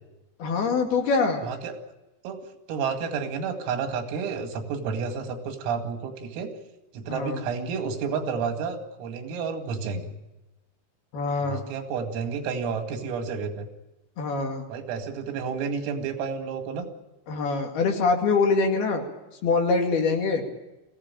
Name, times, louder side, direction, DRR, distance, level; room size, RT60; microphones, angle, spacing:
voice 1, 0.4-1.4 7.1-7.4 11.1-11.6 14.2-14.6 17.3-19.0 19.4-20.4, left 4 dB, 55° left, 2 dB, 4.0 m, -24 dB
voice 2, 1.4-1.7 2.2-2.4 2.7-6.5 6.9-10.1 11.4-13.7 14.7-16.9, right 5 dB, 90° right, 5 dB, 4.9 m, -30 dB
23.0 x 16.5 x 8.9 m, 1.0 s
omnidirectional pair, 5.8 m